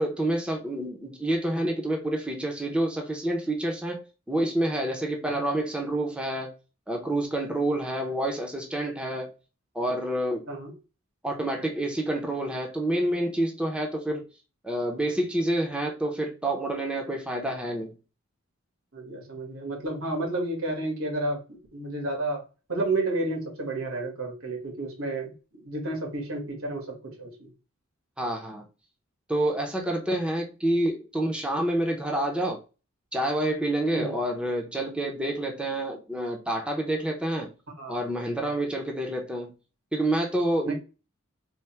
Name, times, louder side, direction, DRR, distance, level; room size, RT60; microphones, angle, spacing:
voice 1, 0.0-4.0 4.3-6.5 6.9-9.3 9.7-10.5 11.2-14.3 14.6-18.0 28.2-28.6 29.3-32.6 33.1-37.5 37.9-39.5 39.9-40.7, right 1 dB, 5° right, 0.6 m, -28 dB
voice 2, 18.9-21.4 21.7-22.4 22.7-25.3 25.6-27.5 33.9-34.1 37.8-37.9 40.6-40.7, right 2 dB, 80° right, 1.5 m, -31 dB
3.4 x 2.1 x 4.3 m
head